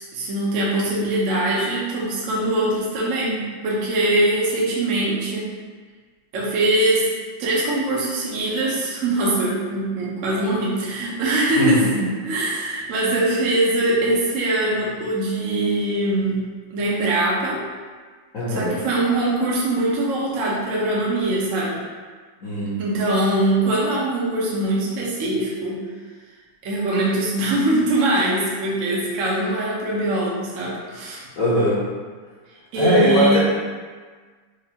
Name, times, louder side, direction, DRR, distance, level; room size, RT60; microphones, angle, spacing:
voice 1, 0.0-5.5 6.3-7.1 7.4-11.8 12.2-16.4 16.7-17.6 18.5-21.8 22.8-25.8 26.6-31.3 32.7-33.4, right 1 dB, 60° right, -5 dB, 0.8 m, -22 dB
voice 2, 11.6-11.9 18.3-18.7 22.4-22.8 31.4-31.8 32.8-33.4, equal, 55° left, -8 dB, 1.0 m, -20 dB
4.6 x 2.5 x 2.8 m, 1.5 s
omnidirectional pair, 2.2 m